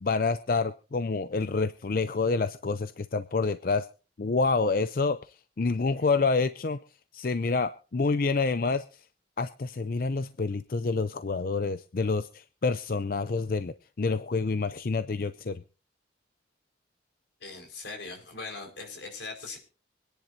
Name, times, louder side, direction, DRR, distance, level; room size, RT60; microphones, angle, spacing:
voice 1, 0.0-3.9 4.2-5.2 5.6-6.8 7.1-8.8 9.4-15.6, left 4 dB, 50° left, 12 dB, 0.5 m, -28 dB
voice 2, 17.4-19.6, left 3 dB, 85° left, 3 dB, 4.9 m, -40 dB
25.0 x 10.5 x 2.7 m, 0.36 s
head